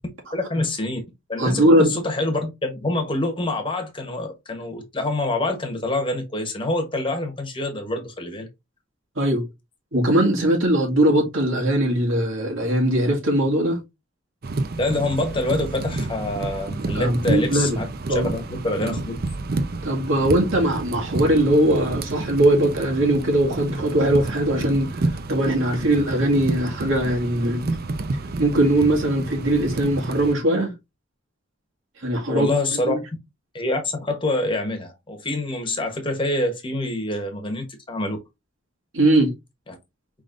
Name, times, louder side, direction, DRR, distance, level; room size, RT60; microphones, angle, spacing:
voice 1, 0.3-1.0 1.3-8.5 14.8-19.2 32.3-33.0 33.5-38.2 39.7-39.8, left 2 dB, 25° left, 1.0 m, -26 dB
voice 2, 1.4-1.9 9.2-9.4 9.9-13.8 16.9-17.8 18.1-18.3 19.8-24.9 25.3-27.6 28.4-30.7 32.0-32.6 32.8-33.0 38.9-39.3, right 1 dB, 90° right, 2.0 m, -20 dB
sound 1, 14.4-30.3, right 2 dB, 50° right, 0.5 m, -30 dB
5.1 x 3.7 x 2.5 m
head